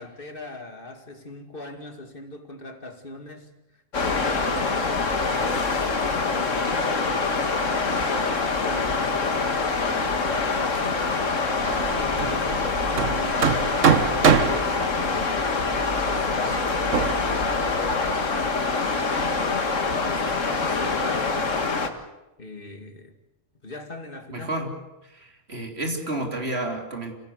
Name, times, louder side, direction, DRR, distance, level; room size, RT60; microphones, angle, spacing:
voice 1, 0.0-3.5 4.0-5.8 6.3-9.6 10.2-11.1 11.9-15.6 16.1-19.8 20.0-21.7 22.4-23.1 23.6-24.5, left 1 dB, 45° left, 2.5 m, -40 dB
sound 1, 3.9-21.9, left 4 dB, 80° left, 2.2 m, -25 dB
Hammer, 11.6-18.5, right 6 dB, 80° right, 1.8 m, -26 dB
voice 2, 24.3-24.7 25.1-27.1, right 1 dB, 55° right, 3.7 m, -30 dB
27.0 x 17.0 x 8.2 m
omnidirectional pair, 1.3 m